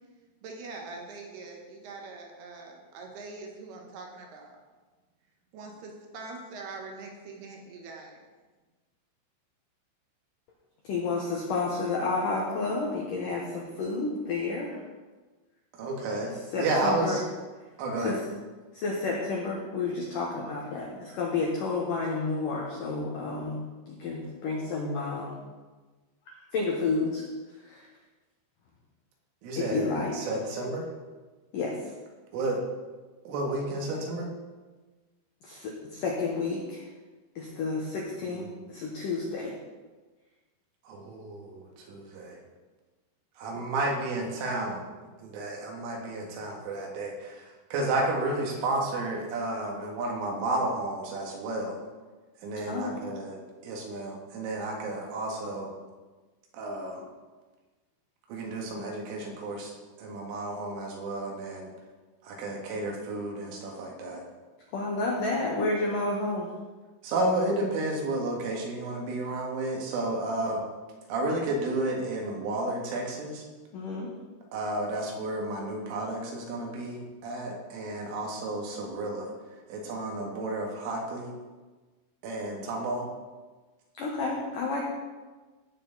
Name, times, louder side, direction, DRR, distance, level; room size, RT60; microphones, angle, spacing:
voice 1, 0.4-4.6 5.5-8.2, right 3 dB, 70° right, 1 dB, 2.8 m, -43 dB
voice 2, 10.8-14.8 16.5-17.2 18.0-18.2 18.7-23.6 23.9-25.4 26.5-27.2 27.6-27.9 29.6-30.1 31.5-31.9 35.4-36.9 37.4-39.5 52.7-53.0 64.7-66.5 73.7-74.1 84.0-84.8, left 3 dB, 75° left, -2 dB, 1.9 m, -30 dB
voice 3, 15.8-17.2 17.8-18.2 29.4-30.9 32.3-32.6 33.3-34.3 38.2-38.7 40.9-42.4 43.4-44.8 45.2-51.8 52.4-53.4 53.6-55.7 56.5-57.0 58.3-59.7 60.0-61.7 62.2-64.2 67.0-70.6 71.1-73.5 74.5-79.3 79.7-81.3 82.2-83.1, right 2 dB, 85° right, 0 dB, 4.3 m, -32 dB
16.5 x 6.7 x 4.0 m, 1.3 s
omnidirectional pair, 5.6 m